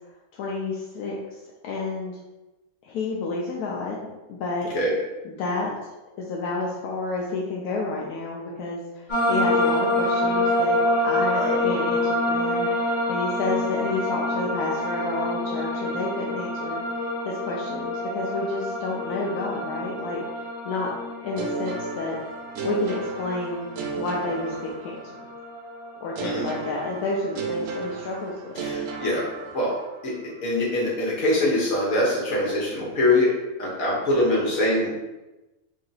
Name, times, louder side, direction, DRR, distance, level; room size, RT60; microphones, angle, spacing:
voice 1, 0.3-1.2 1.6-2.2 2.8-4.7 5.2-5.7 6.2-10.8 11.0-16.8 17.2-20.9 21.2-22.2 22.6-23.7 24.0-25.2 26.0-28.6 28.9-29.0, left 3 dB, 85° left, -3 dB, 1.1 m, -30 dB
sound 1, 9.1-26.8, left 1 dB, 30° left, 1.2 m, -27 dB
sound 2, 21.4-25.3 26.1-30.0, right 4 dB, 70° right, 0.9 m, -33 dB
voice 2, 28.6-29.2 29.5-29.7 30.0-30.1 30.4-33.3 33.6-34.9, left 1 dB, 65° left, -4 dB, 1.5 m, -23 dB
3.1 x 2.8 x 3.9 m, 1.1 s
omnidirectional pair, 1.6 m